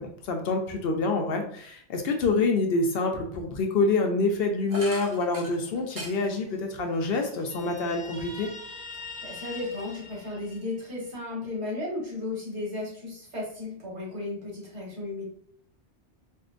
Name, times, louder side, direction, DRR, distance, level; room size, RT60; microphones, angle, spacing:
voice 1, 0.0-8.5, left 3 dB, 70° left, 3 dB, 0.8 m, -26 dB
sound 1, 4.7-8.7 9.1-10.2, right 1 dB, 50° right, 0.9 m, -44 dB
Guitar, 7.5-11.1, left 3 dB, 10° left, 0.6 m, -43 dB
voice 2, 8.9-15.2, left 2 dB, 80° right, -4 dB, 1.7 m, -35 dB
4.4 x 2.1 x 2.4 m, 0.63 s
omnidirectional pair, 1.1 m